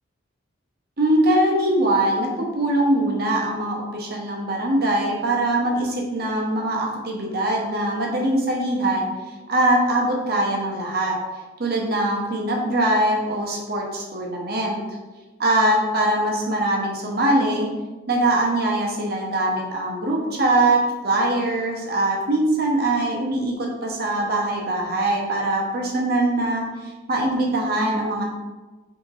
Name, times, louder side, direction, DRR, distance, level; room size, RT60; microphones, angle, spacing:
voice 1, 1.0-9.1 9.5-11.2 11.6-14.8 15.4-17.7 18.1-28.2, right 1 dB, 50° right, -1 dB, 0.8 m, -22 dB
3.5 x 2.8 x 4.1 m, 1.2 s
head